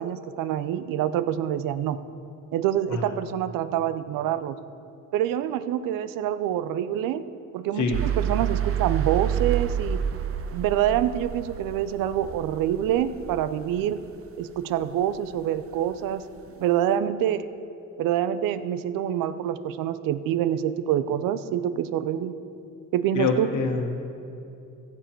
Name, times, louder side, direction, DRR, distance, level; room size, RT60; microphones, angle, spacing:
voice 1, 0.0-2.0 2.5-4.6 5.1-7.2 7.5-10.0 10.5-14.0 14.4-16.2 16.6-17.5 18.0-22.3 22.9-23.5, right 11 dB, 85° right, 13 dB, 0.6 m, -26 dB
sound 1, 7.9-14.1, right 9 dB, 45° right, 0.7 m, -29 dB
voice 2, 23.1-24.0, left 4 dB, 60° left, 4 dB, 1.5 m, -25 dB
15.5 x 7.2 x 4.6 m, 2.7 s
cardioid pair, 85°, 32 cm